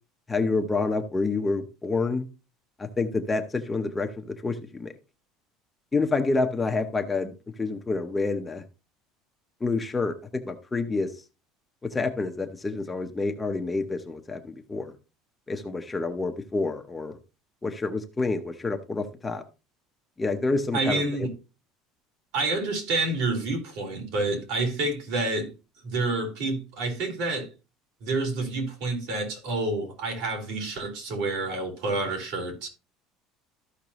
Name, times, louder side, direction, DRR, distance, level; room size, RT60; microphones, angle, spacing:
voice 1, 0.3-2.3 2.8-4.9 5.9-7.3 7.6-8.6 9.6-11.2 11.8-14.9 15.5-17.2 17.6-19.4 20.2-21.3, left 3 dB, 10° left, 0.7 m, -28 dB
voice 2, 20.7-21.3 22.3-25.5 25.8-27.5 28.0-32.7, right 2 dB, 65° right, 3.9 m, -28 dB
13.5 x 5.8 x 3.0 m
cardioid pair, 170°, 0 cm